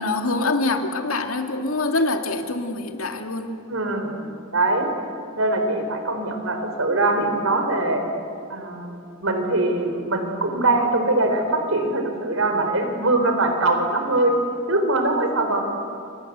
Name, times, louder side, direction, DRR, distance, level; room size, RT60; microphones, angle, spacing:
voice 1, 0.0-3.6, left 2 dB, 90° left, 6 dB, 2.3 m, -25 dB
voice 2, 3.7-4.2 4.5-4.9 5.3-8.0 8.5-14.4 14.7-15.6, right 2 dB, 75° right, 5 dB, 4.2 m, -22 dB
29.0 x 24.5 x 8.2 m, 2.5 s
head